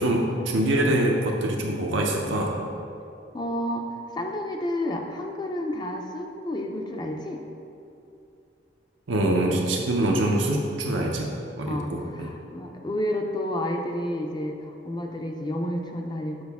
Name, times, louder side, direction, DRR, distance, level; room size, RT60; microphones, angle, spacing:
voice 1, 0.0-2.6 9.1-12.3, right 1 dB, 85° right, -1 dB, 0.6 m, -24 dB
voice 2, 3.3-7.4 11.7-16.4, left 1 dB, 25° left, 3 dB, 0.4 m, -30 dB
6.3 x 4.8 x 3.5 m, 2.7 s
head